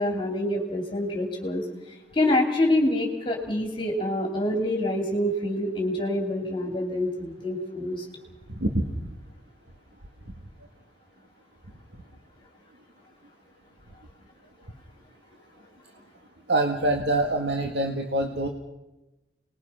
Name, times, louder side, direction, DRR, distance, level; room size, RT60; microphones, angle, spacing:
voice 1, 0.0-1.6 2.1-8.0, left 1 dB, 30° left, 2 dB, 2.9 m, -26 dB
voice 2, 8.6-8.9 10.3-10.4 16.5-18.5, right 1 dB, 80° right, 3 dB, 2.1 m, -25 dB
29.5 x 20.5 x 5.8 m, 1.0 s
head